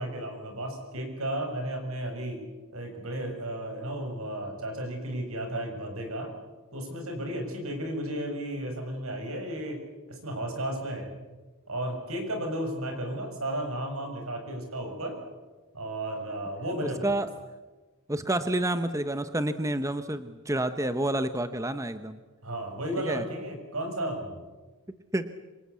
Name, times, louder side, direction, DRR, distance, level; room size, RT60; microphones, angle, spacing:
voice 1, 0.0-2.4 2.7-6.3 6.7-9.8 10.1-11.1 11.7-15.1 15.7-17.1 22.4-24.4, right 1 dB, 75° right, 4 dB, 6.9 m, -33 dB
voice 2, 16.8-17.3 18.1-22.2 23.0-23.2 24.9-25.3, right 1 dB, 15° right, 10 dB, 0.9 m, -29 dB
26.0 x 26.0 x 8.3 m, 1.2 s
head